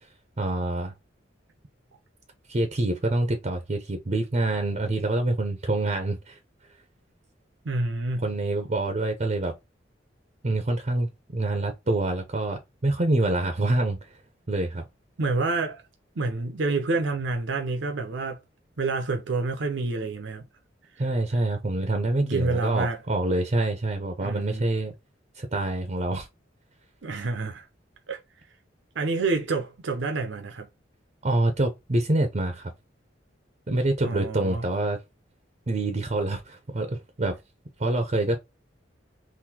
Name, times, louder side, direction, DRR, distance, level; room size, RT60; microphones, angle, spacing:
voice 1, 0.4-0.9 2.5-6.4 8.2-9.5 10.4-14.0 14.5-14.8 21.0-24.9 25.4-26.3 31.2-32.7 33.7-35.0 35.7-37.4 37.8-38.4, right 2 dB, 40° right, 0.6 m, -26 dB
voice 2, 7.6-8.3 15.2-15.8 16.2-18.4 18.8-20.4 22.2-23.0 24.2-24.6 27.0-27.7 28.1-28.2 28.9-30.7 34.0-34.6, right 3 dB, 75° right, 0.7 m, -28 dB
3.9 x 2.6 x 2.8 m
head